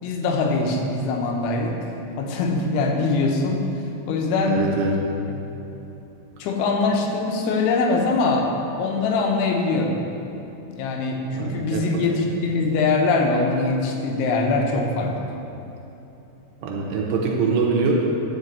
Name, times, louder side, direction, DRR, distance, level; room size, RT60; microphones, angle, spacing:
voice 1, 0.0-1.9 2.2-3.7 4.1-4.7 5.3-5.4 6.4-8.5 8.8-10.0 10.7-15.3, left 3 dB, 85° left, 1 dB, 3.3 m, -22 dB
voice 2, 4.5-5.0 11.4-12.0 16.6-17.9, right 4 dB, 75° right, -1 dB, 2.9 m, -24 dB
11.5 x 5.1 x 8.0 m, 2.9 s
omnidirectional pair, 5.4 m